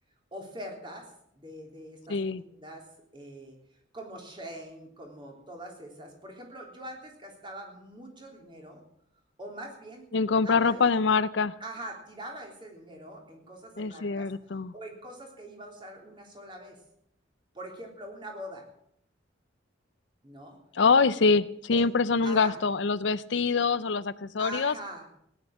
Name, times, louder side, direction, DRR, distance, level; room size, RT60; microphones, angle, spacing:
voice 1, 0.3-2.2 2.5-2.9 3.1-8.8 9.4-10.1 10.4-10.9 11.6-14.3 14.7-16.8 17.5-18.7 20.2-20.6 21.7-21.8 22.2-22.6 24.4-25.1, right 1 dB, 25° right, 1 dB, 3.4 m, -43 dB
voice 2, 2.1-2.4 10.1-11.5 13.8-14.7 20.7-24.7, left 4 dB, 65° left, 15 dB, 0.6 m, -25 dB
17.0 x 10.5 x 7.3 m, 0.73 s
head